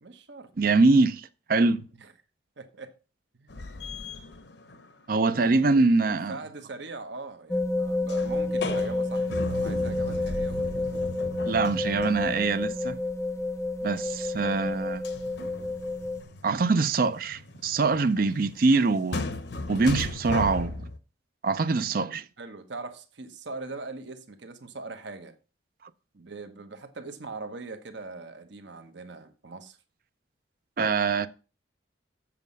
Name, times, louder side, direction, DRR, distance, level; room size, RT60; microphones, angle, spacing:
voice 1, 0.0-0.5 2.0-2.1 2.6-2.9 3.3-3.6 5.3-10.8 22.4-25.3 26.1-29.8, right 3 dB, 70° right, 1.0 m, -41 dB
voice 2, 0.6-1.8 5.1-6.4 11.4-13.0 13.8-15.0 16.4-19.2 19.7-20.9 21.4-22.3 30.8-31.3, right 3 dB, 45° right, 0.4 m, -24 dB
sound 1, 3.5-5.0 8.1-12.7 15.0-21.0, left 2 dB, 65° left, 0.8 m, -37 dB
sound 2, 7.5-16.2, left 2 dB, 15° left, 0.5 m, -30 dB
7.6 x 7.3 x 5.3 m
head